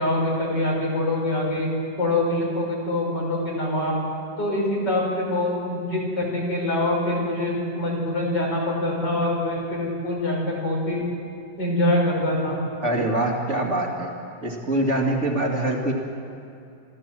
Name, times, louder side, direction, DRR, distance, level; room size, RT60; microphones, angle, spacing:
voice 1, 0.0-1.7 2.0-4.0 4.4-11.0 11.6-12.6, left 1 dB, 65° left, -3 dB, 5.9 m, -24 dB
voice 2, 12.8-14.1 14.4-15.9, right 1 dB, 40° right, -1 dB, 2.5 m, -24 dB
27.0 x 14.0 x 7.6 m, 2.7 s
omnidirectional pair, 2.0 m